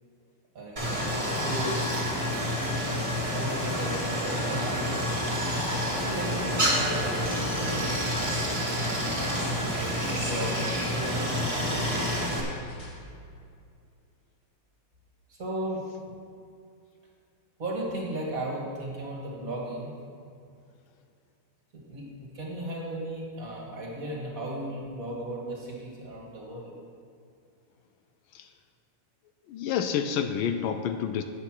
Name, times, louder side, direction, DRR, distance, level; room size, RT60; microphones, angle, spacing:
voice 1, 0.5-2.0 3.3-5.4 6.0-6.7 7.5-8.5 9.6-12.1 15.3-16.1 17.6-19.9 21.7-26.7, right 1 dB, 40° right, -3 dB, 2.1 m, -36 dB
Stream, 0.8-12.4, equal, 15° right, 1.8 m, -28 dB
sound 1, 5.5-13.0, equal, 50° left, 2.0 m, -44 dB
voice 2, 29.5-31.2, left 8 dB, 75° left, 8 dB, 1.3 m, -28 dB
8.7 x 8.1 x 6.0 m, 2.3 s
omnidirectional pair, 2.3 m